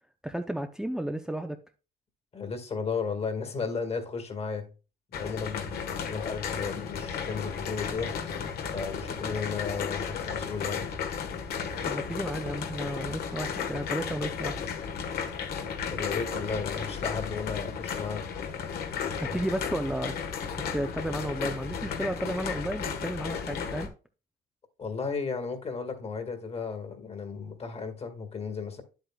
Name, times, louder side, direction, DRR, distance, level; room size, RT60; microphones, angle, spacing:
voice 1, 0.2-1.6 11.8-14.6 19.2-20.4 20.7-23.9, right 1 dB, 5° right, 0.6 m, -33 dB
voice 2, 2.3-4.7 5.2-8.2 8.7-10.9 15.9-18.2 24.8-28.8, left 5 dB, 35° left, 1.9 m, -34 dB
sound 1, 5.1-23.9, left 6 dB, 65° left, 1.5 m, -34 dB
9.7 x 8.1 x 2.3 m
cardioid pair, 110°, 17 cm